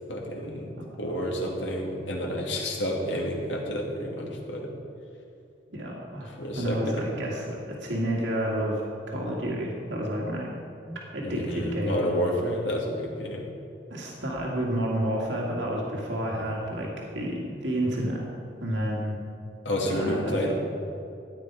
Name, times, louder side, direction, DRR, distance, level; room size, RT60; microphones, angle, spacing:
voice 1, 0.1-4.7 6.4-7.0 11.2-13.5 16.3-16.4 19.6-20.5, equal, 90° left, -1 dB, 2.5 m, -30 dB
voice 2, 5.7-8.8 9.1-10.5 10.9-12.0 13.9-18.2 18.6-19.2 19.8-20.5, right 1 dB, 80° right, -3 dB, 2.3 m, -30 dB
15.0 x 9.6 x 4.9 m, 2.7 s
head